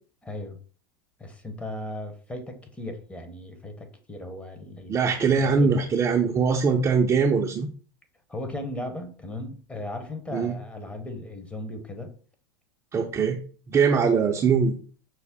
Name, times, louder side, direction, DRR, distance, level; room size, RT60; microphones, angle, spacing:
voice 1, 0.2-0.6 1.2-5.9 8.3-12.2, left 1 dB, 10° left, 0.9 m, -37 dB
voice 2, 4.9-7.7 10.3-10.6 12.9-14.8, right 5 dB, 25° right, 0.5 m, -22 dB
5.7 x 2.0 x 3.6 m
hypercardioid pair, 110°, 11 cm